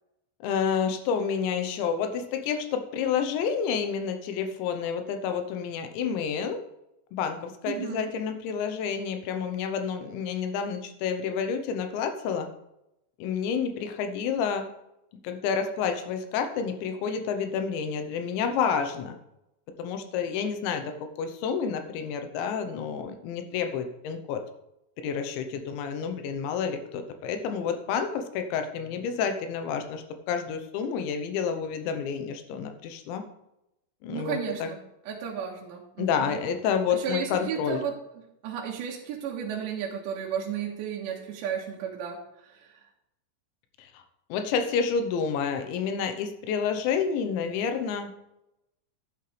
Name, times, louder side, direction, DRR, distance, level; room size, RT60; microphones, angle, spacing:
voice 1, 0.4-6.6 7.1-12.5 13.2-14.7 15.2-19.2 19.8-24.4 25.0-33.2 34.0-34.7 36.0-37.8 43.8-44.0 44.3-48.1, left 6 dB, 75° left, 7 dB, 3.2 m, -29 dB
voice 2, 7.6-8.1 34.1-34.8 35.1-36.4 36.9-37.9 38.4-42.7, right 8 dB, 75° right, -2 dB, 3.2 m, -33 dB
11.5 x 9.9 x 3.3 m, 0.86 s
omnidirectional pair, 5.5 m